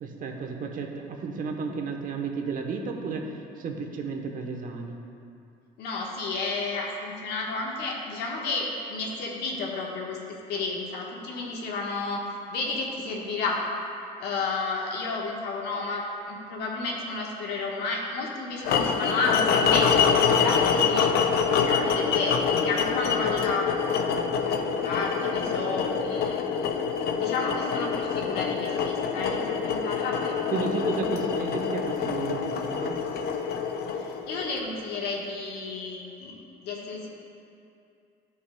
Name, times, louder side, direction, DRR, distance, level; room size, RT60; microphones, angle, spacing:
voice 1, 0.0-3.3 3.6-5.0 30.5-33.0, right 4 dB, 55° right, 2 dB, 0.9 m, -32 dB
voice 2, 5.8-13.6 14.2-23.7 24.3-26.4 27.1-30.8 33.9-36.4 36.6-37.1, left 3 dB, 85° left, -1 dB, 1.2 m, -32 dB
sound 1, 18.7-34.8, left 6 dB, 70° left, 0.6 m, -26 dB
13.0 x 5.5 x 2.2 m, 2.6 s
cardioid pair, 110°, 17 cm